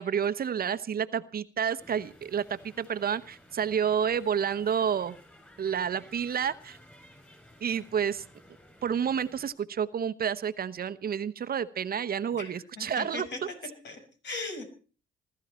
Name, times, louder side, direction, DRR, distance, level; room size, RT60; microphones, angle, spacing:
voice 1, 0.0-5.1 5.6-6.8 7.6-8.2 8.8-13.3, right 8 dB, 50° right, 13 dB, 0.9 m, -30 dB
sound 1, 1.8-9.5, equal, 10° left, 7.0 m, -55 dB
voice 2, 12.4-13.4 13.8-14.6, left 3 dB, 65° left, 5 dB, 5.9 m, -38 dB
20.5 x 13.0 x 4.4 m, 0.39 s
cardioid pair, 90°, 20 cm